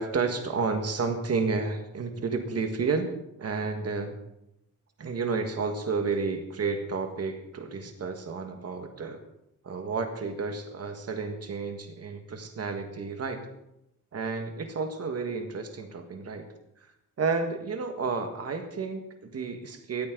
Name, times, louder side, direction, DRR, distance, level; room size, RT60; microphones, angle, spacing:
voice 1, 0.0-3.1 3.4-4.2 5.0-9.2 9.6-13.4 14.1-16.4 17.2-20.1, right 4 dB, 50° right, 6 dB, 1.7 m, -31 dB
17.5 x 14.0 x 3.9 m, 0.83 s
wide cardioid pair, 170°, 32 cm